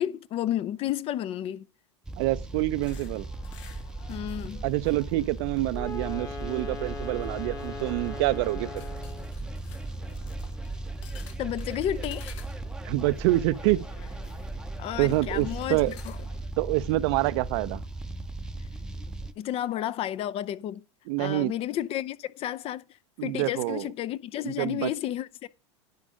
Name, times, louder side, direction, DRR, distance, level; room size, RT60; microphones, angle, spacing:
voice 1, 0.0-1.7 4.1-4.6 11.4-12.4 14.8-16.2 19.4-20.8 21.2-22.8 23.2-25.5, left 12 dB, 40° left, 0.6 m, -31 dB
sound 1, 2.0-19.3, right 2 dB, 5° right, 0.7 m, -37 dB
voice 2, 2.2-3.3 4.6-8.9 12.8-13.9 15.0-16.0 16.6-17.8 21.1-21.5 23.2-23.9 24.4-24.9, right 18 dB, 65° right, 0.6 m, -26 dB
sound 2, 2.8-16.4, left 9 dB, 80° left, 1.4 m, -53 dB
Wind instrument woodwind instrument, 5.7-9.4, left 4 dB, 25° left, 1.3 m, -39 dB
10.5 x 5.1 x 6.2 m
supercardioid pair, 115°, 15 cm